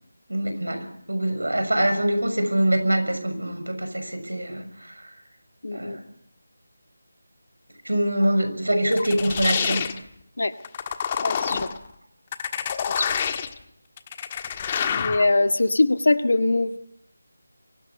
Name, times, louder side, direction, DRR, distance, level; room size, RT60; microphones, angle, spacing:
voice 1, 0.3-5.1 5.7-6.0 7.8-9.9, right 1 dB, 80° right, 8 dB, 6.5 m, -24 dB
voice 2, 5.6-6.0 10.4-10.5 11.2-11.7 13.0-13.1 14.9-16.8, left 2 dB, 60° left, 9 dB, 1.8 m, -22 dB
sound 1, 8.9-10.0 10.6-11.8 12.3-13.6 14.0-15.3, left 7 dB, 25° left, 1.4 m, -27 dB
24.0 x 17.5 x 9.6 m, 0.69 s
figure-of-eight pair, 160°, 0 cm